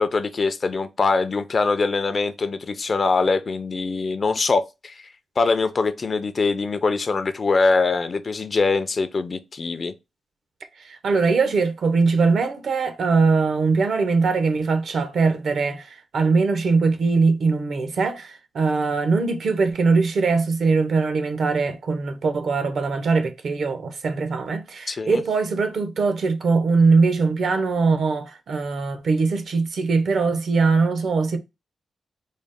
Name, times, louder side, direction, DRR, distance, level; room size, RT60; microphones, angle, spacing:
voice 1, 0.0-5.0 5.4-9.9 24.9-25.2, left 4 dB, 40° left, 0.4 m, -23 dB
voice 2, 10.8-31.4, right 4 dB, 65° right, 0.6 m, -21 dB
4.0 x 2.0 x 3.5 m
wide cardioid pair, 110°, 0 cm